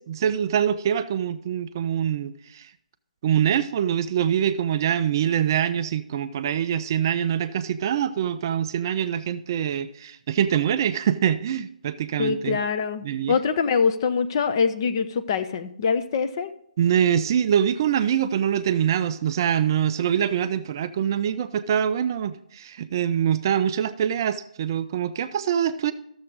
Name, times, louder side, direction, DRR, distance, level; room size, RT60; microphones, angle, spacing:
voice 1, 0.1-2.7 3.2-12.6 13.0-13.4 16.8-25.9, right 9 dB, 30° right, 12 dB, 0.3 m, -24 dB
voice 2, 12.2-16.5, left 5 dB, 30° left, 8 dB, 0.6 m, -24 dB
13.0 x 7.0 x 4.0 m, 0.74 s
figure-of-eight pair, 145°, 4 cm